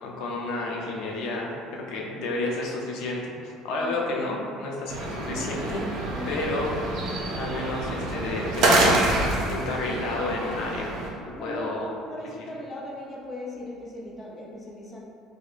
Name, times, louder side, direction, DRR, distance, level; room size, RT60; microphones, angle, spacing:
voice 1, 0.0-6.8 7.3-9.1 9.5-10.9 11.4-11.9, left 2 dB, 65° left, -2 dB, 0.6 m, -31 dB
sound 1, 4.9-11.1, right 2 dB, 55° right, 0.6 m, -26 dB
voice 2, 6.1-6.5 11.3-15.0, left 1 dB, 15° left, -3 dB, 0.6 m, -38 dB
4.9 x 2.1 x 2.5 m, 2.5 s
cardioid pair, 140°, 0 cm